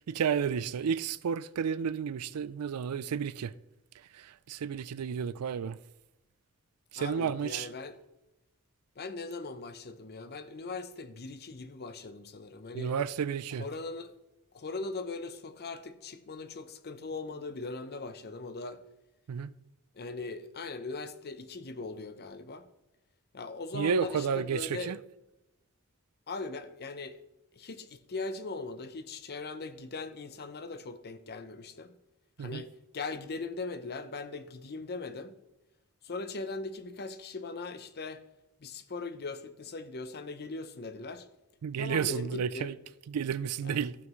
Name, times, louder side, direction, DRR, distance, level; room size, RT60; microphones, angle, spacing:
voice 1, 0.1-3.5 4.1-5.8 6.9-7.7 12.7-13.6 19.3-19.5 23.7-25.0 32.4-32.6 41.6-42.7 43.1-44.0, right 7 dB, 85° right, 0.4 m, -31 dB
voice 2, 7.0-8.0 9.0-12.9 13.5-14.1 14.5-18.8 20.0-22.7 23.3-24.9 26.3-27.2 27.6-31.9 32.4-35.3 36.0-38.2 38.6-41.3 41.8-42.7 43.6-43.8, left 3 dB, 45° left, 0.7 m, -40 dB
15.5 x 5.9 x 3.1 m
head